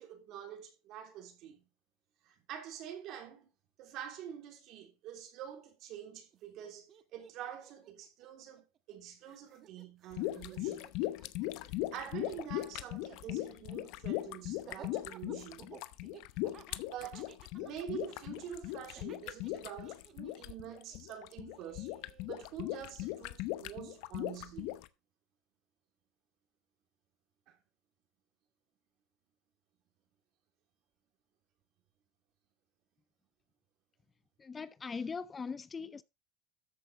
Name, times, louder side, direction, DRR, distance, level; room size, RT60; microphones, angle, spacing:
voice 1, 0.0-1.6 2.2-3.5 3.8-10.9 11.9-15.8 16.9-17.3 17.6-21.9 22.3-24.8 27.5-27.6, right 9 dB, 60° right, 3.2 m, -46 dB
Laughter, 6.3-6.4 6.6-9.0 9.2-22.3, right 9 dB, 40° right, 1.1 m, -56 dB
sound 1, 10.1-24.9, left 17 dB, 70° left, 0.8 m, -39 dB
voice 2, 34.4-36.0, left 5 dB, 20° left, 0.5 m, -40 dB
13.5 x 7.7 x 3.2 m
supercardioid pair, 115°, 0 cm